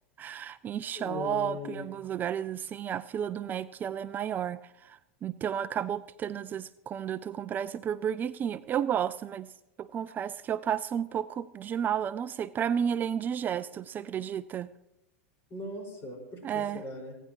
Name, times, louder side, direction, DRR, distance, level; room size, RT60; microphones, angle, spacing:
voice 1, 0.2-9.5 9.8-14.7 16.4-16.8, right 9 dB, 30° right, 15 dB, 0.4 m, -32 dB
voice 2, 0.9-1.9 15.5-17.1, left 2 dB, 35° left, 1 dB, 5.3 m, -39 dB
27.5 x 10.0 x 3.1 m, 0.90 s
hypercardioid pair, 95°, 7 cm